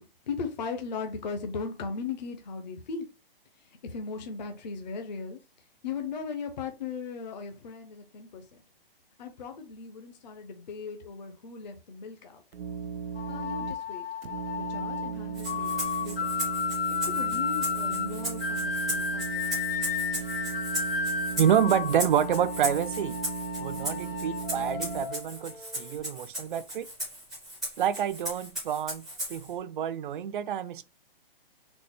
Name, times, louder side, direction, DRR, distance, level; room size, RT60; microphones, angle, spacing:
voice 1, 0.0-3.1 3.6-5.4 5.8-8.6 9.2-12.4 13.3-14.0 14.6-15.7 16.0-16.3 17.0-19.3 23.8-24.0, left 5 dB, 50° left, 0.7 m, -38 dB
sound 1, 12.5-13.7 14.2-25.0, right 7 dB, 90° right, 0.7 m, -37 dB
sound 2, 13.2-26.0, left 6 dB, 80° left, 0.9 m, -33 dB
Rattle (instrument), 15.3-29.5, right 1 dB, ahead, 0.5 m, -37 dB
voice 2, 21.4-23.2 23.6-26.9 27.8-29.0 29.3-30.8, right 9 dB, 60° right, 0.4 m, -28 dB
4.0 x 2.1 x 3.4 m
hypercardioid pair, 175°, 29 cm